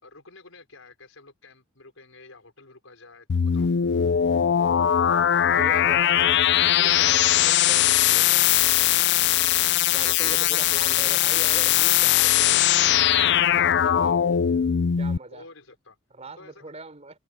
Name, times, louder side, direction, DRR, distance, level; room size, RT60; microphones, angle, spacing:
voice 1, 0.0-3.7 9.8-10.4 15.3-16.0 16.4-16.7, left 3 dB, 75° left, 5.5 m, -49 dB
sound 1, 3.3-15.2, left 10 dB, 55° left, 0.5 m, -20 dB
voice 2, 5.4-9.1 9.9-12.7 13.6-14.5 15.0-15.5 16.1-17.2, right 2 dB, 35° right, 4.0 m, -40 dB
head